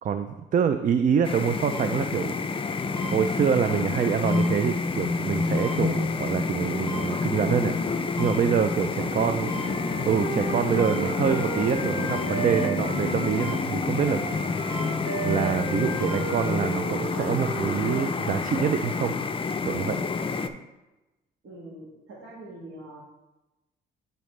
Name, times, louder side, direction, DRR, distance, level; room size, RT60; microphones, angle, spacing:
voice 1, 0.0-2.4 3.1-9.5 10.0-14.2 15.2-19.1 19.6-20.0, right 7 dB, 40° right, 8 dB, 0.4 m, -26 dB
sound 1, 1.2-20.5, left 4 dB, 25° left, 0.5 m, -28 dB
sound 2, 1.7-1.8 3.0-3.1 4.3-4.4 5.6-5.7 6.9-7.0 8.2-8.3 9.5-9.6 10.8-10.9 12.1-12.2 13.4-13.5 14.7-14.9 16.0-16.2, right 2 dB, 5° left, 1.4 m, -38 dB
voice 2, 9.0-9.4 10.3-10.7 14.1-14.4 14.7-14.9 21.4-23.0, right 1 dB, 70° right, -5 dB, 1.7 m, -42 dB
Wind instrument woodwind instrument, 9.5-13.6 13.9-18.2, right 5 dB, 90° right, 0.9 m, -35 dB
10.0 x 4.0 x 3.2 m, 1.0 s
cardioid pair, 90°, 20 cm